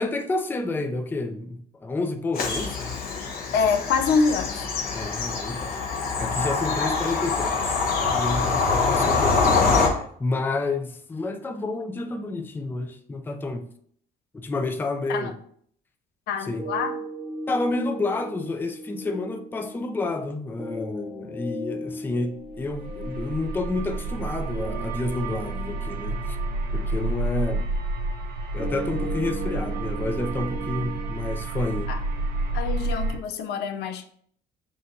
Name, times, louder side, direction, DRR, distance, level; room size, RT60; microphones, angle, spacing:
voice 1, 0.0-3.0 4.9-5.8 6.2-7.8 8.1-13.7 14.3-15.4 16.4-16.7 17.5-26.4 26.7-27.7 28.5-31.9, left 2 dB, 10° left, 0.4 m, -30 dB
Bird vocalization bird call bird song / Train, 2.3-9.9, left 4 dB, 60° left, 1.0 m, -24 dB
voice 2, 3.5-4.7 15.1-15.3 16.3-16.9 31.9-32.0 32.5-34.0, left 5 dB, 80° left, 0.5 m, -25 dB
sound 1, 16.6-32.6, right 1 dB, 5° right, 0.8 m, -38 dB
sound 2, 22.5-33.2, right 3 dB, 70° right, 0.6 m, -30 dB
6.1 x 2.5 x 2.6 m
cardioid pair, 110°, 17 cm